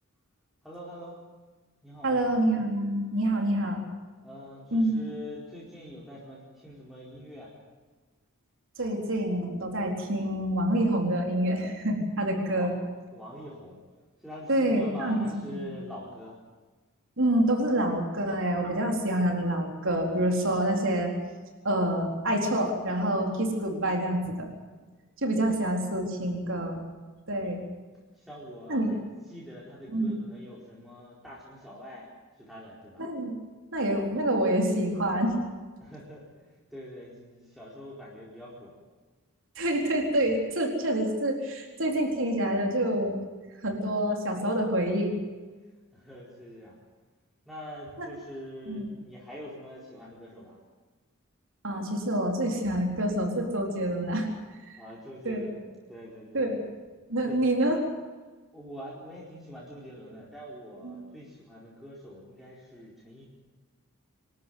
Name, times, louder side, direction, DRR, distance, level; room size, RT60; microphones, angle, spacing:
voice 1, 0.6-1.2 1.8-2.2 4.2-7.5 12.5-12.8 13.1-13.8 14.2-16.4 25.4-25.7 27.4-27.5 28.1-29.0 29.3-33.0 35.8-38.7 45.9-46.8 47.5-50.6 54.8-55.6 55.9-56.5 57.2-57.4 58.5-63.3, equal, ahead, -6 dB, 4.5 m, -44 dB
voice 2, 2.0-3.8 4.7-5.0 8.8-12.7 14.5-15.7 17.2-21.1 21.6-24.5 25.2-26.8 27.3-27.6 28.7-28.9 29.9-30.1 33.0-33.3 33.7-35.3 39.6-43.2 43.6-45.1 48.0-48.1 48.7-48.9 51.6-54.3 54.7-54.8 55.2-55.5 56.3-56.6 57.1-57.8 60.8-61.0, right 1 dB, 60° right, 2 dB, 4.1 m, -27 dB
26.0 x 13.0 x 9.4 m, 1.3 s
head